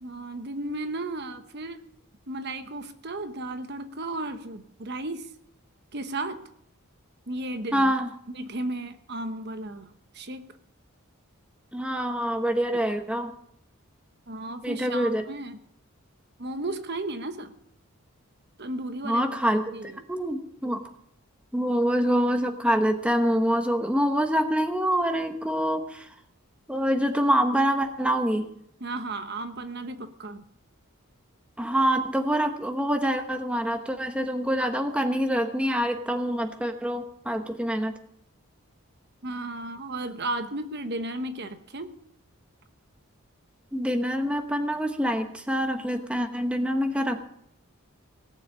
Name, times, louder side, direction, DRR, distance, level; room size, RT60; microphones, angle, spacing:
voice 1, 0.0-1.9 2.3-5.3 5.9-6.4 7.3-7.9 8.3-10.4 14.3-15.6 16.4-17.5 18.6-19.2 19.7-20.0 28.8-30.5 39.2-41.9, right 2 dB, 50° right, 9 dB, 1.1 m, -34 dB
voice 2, 7.7-8.1 11.7-13.3 14.6-15.3 19.0-20.8 21.5-26.1 26.7-28.5 31.6-37.9 43.7-47.2, equal, 5° right, 5 dB, 1.0 m, -25 dB
18.5 x 7.1 x 8.8 m, 0.71 s
head